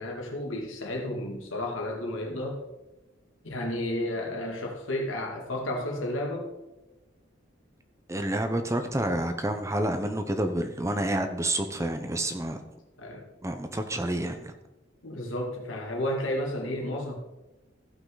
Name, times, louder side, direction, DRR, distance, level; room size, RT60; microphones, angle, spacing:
voice 1, 0.0-2.6 3.4-6.5 13.0-13.3 15.0-17.1, left 1 dB, 90° left, 0 dB, 2.1 m, -32 dB
voice 2, 8.1-12.6 13.4-14.5, right 1 dB, 15° right, 7 dB, 0.7 m, -29 dB
15.0 x 5.8 x 3.9 m, 1.0 s
head